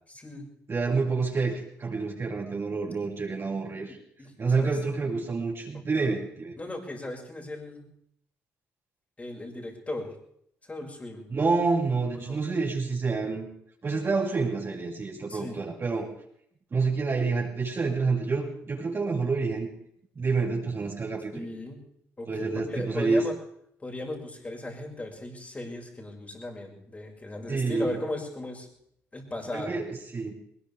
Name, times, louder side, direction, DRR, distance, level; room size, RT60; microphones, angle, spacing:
voice 1, 0.1-0.5 3.8-4.8 5.9-6.1 6.6-7.9 9.2-10.1 10.6-11.3 12.1-12.4 15.3-15.6 21.3-21.8 22.2-23.3 23.8-28.7 29.1-29.7, left 2 dB, 25° left, 0 dB, 5.9 m, -37 dB
voice 2, 0.7-1.5 1.8-4.0 4.4-6.5 11.3-13.5 13.8-16.1 16.7-19.7 20.1-21.4 22.3-23.2 27.5-27.9 29.5-29.9 30.1-30.3, right 4 dB, 40° right, -4 dB, 6.3 m, -28 dB
20.5 x 20.0 x 3.5 m, 0.70 s
supercardioid pair, 70°, 6 cm